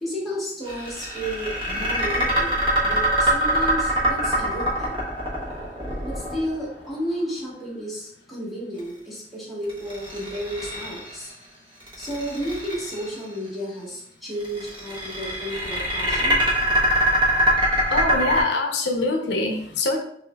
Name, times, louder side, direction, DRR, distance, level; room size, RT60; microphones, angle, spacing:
voice 1, 0.0-2.6 2.8-5.0 6.0-11.3 12.0-16.4, equal, ahead, -7 dB, 1.2 m, -32 dB
sound 1, 0.7-6.9 9.7-11.3 11.8-13.1 14.4-18.4, right 1 dB, 25° right, 1.0 m, -23 dB
voice 2, 17.9-20.0, left 2 dB, 75° left, 2 dB, 0.6 m, -24 dB
5.6 x 2.5 x 2.2 m, 0.67 s
head